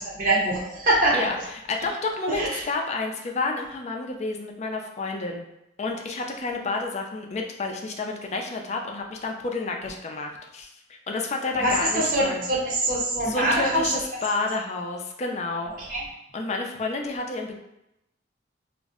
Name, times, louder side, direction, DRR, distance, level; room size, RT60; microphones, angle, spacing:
voice 1, 0.2-1.3 2.4-2.5 11.6-14.0 15.9-16.0, right 1 dB, 50° right, -3 dB, 0.6 m, -23 dB
voice 2, 1.1-5.5 5.8-12.4 13.2-15.7 16.3-17.6, left 3 dB, 35° left, 3 dB, 0.4 m, -30 dB
2.5 x 2.0 x 3.6 m, 0.85 s
head